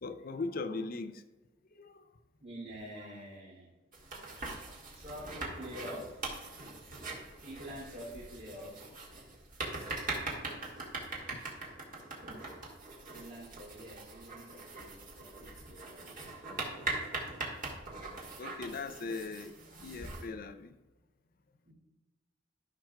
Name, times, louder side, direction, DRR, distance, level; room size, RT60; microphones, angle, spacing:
voice 1, 0.0-1.2 1.7-2.1 3.0-3.1 5.5-5.6 6.7-7.3 11.3-11.4 16.0-20.8, left 3 dB, 50° left, 10 dB, 0.5 m, -42 dB
voice 2, 2.4-3.7 4.9-6.2 7.4-8.8 13.1-16.1 21.6-21.7, equal, 65° right, -9 dB, 2.6 m, -47 dB
sound 1, 3.9-20.3, right 2 dB, 45° right, 1.8 m, -42 dB
13.0 x 6.0 x 2.3 m, 1.2 s
head